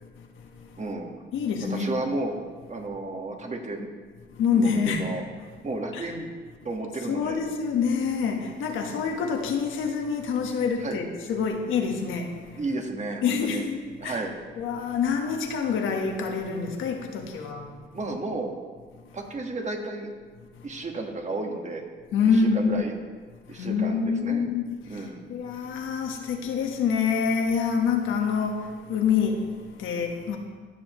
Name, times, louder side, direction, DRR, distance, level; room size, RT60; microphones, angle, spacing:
voice 1, 0.2-0.8 1.3-2.0 4.3-5.1 5.9-6.0 7.1-12.6 13.2-14.2 14.6-17.9 20.5-20.7 22.1-22.7 23.5-30.4, left 6 dB, 80° left, 3 dB, 1.4 m, -27 dB
voice 2, 0.8-1.1 1.7-2.3 2.7-3.9 4.5-5.2 5.6-6.3 6.6-7.4 10.8-11.0 12.6-13.6 14.0-14.3 17.9-18.5 19.1-20.1 20.6-21.8 22.3-22.9 23.5-24.4 24.8-25.2, right 2 dB, 35° right, 2 dB, 1.6 m, -32 dB
15.5 x 7.1 x 3.1 m, 1.5 s
cardioid pair, 90°, 20 cm